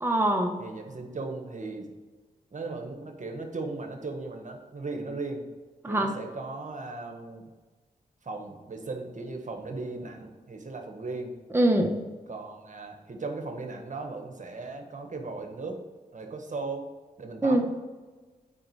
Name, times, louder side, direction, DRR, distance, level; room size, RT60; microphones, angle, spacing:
voice 1, 0.0-0.6 5.8-6.1 11.5-12.0 17.4-17.6, right 1 dB, 15° right, 2 dB, 1.2 m, -23 dB
voice 2, 0.6-1.9 2.5-5.5 5.8-7.5 8.2-11.3 12.3-15.8 16.1-16.9 17.2-17.6, right 3 dB, 50° right, 4 dB, 1.5 m, -37 dB
8.8 x 5.1 x 4.8 m, 1.3 s
cardioid pair, 45°, 16 cm